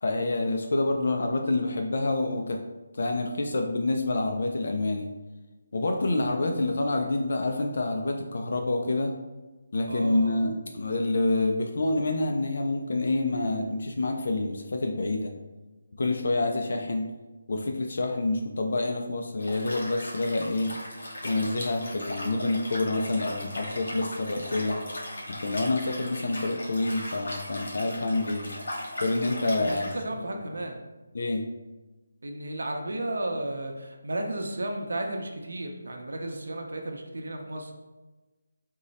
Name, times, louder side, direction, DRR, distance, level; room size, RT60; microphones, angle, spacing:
voice 1, 0.0-2.6 2.9-5.1 5.7-9.1 9.7-15.3 16.0-17.1 17.5-20.7 21.2-24.8 25.3-28.5 29.0-29.9 31.1-31.4, left 2 dB, 50° left, 3 dB, 0.3 m, -27 dB
voice 2, 9.8-10.4 29.5-30.8 32.2-37.7, right 1 dB, 80° right, 3 dB, 0.6 m, -34 dB
Liquid, 19.4-29.9, left 1 dB, 85° left, 1.4 m, -38 dB
3.7 x 2.1 x 4.0 m, 1.2 s
hypercardioid pair, 175°, 0 cm